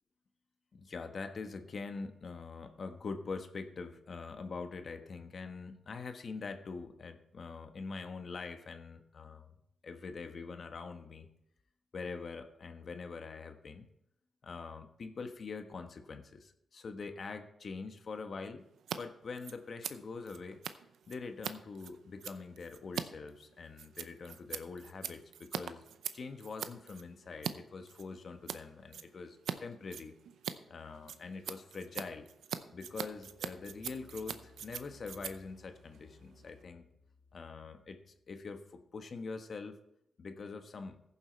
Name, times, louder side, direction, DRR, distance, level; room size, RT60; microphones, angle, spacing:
voice 1, 0.7-9.5 9.8-11.3 11.9-13.9 14.4-18.6 19.0-20.6 21.1-25.8 26.1-30.1 30.7-32.3 32.7-36.8 37.3-39.8 40.2-41.0, left 4 dB, 55° left, 7 dB, 1.2 m, -44 dB
Scissors, 18.8-19.0 19.2-27.5 27.9-28.6 28.9-29.6 29.8-36.6, right 8 dB, 85° right, 0.6 m, -42 dB
sound 1, 32.7-38.9, left 4 dB, 30° left, 1.8 m, -63 dB
14.5 x 7.2 x 4.5 m, 0.79 s
cardioid pair, 65°, 0 cm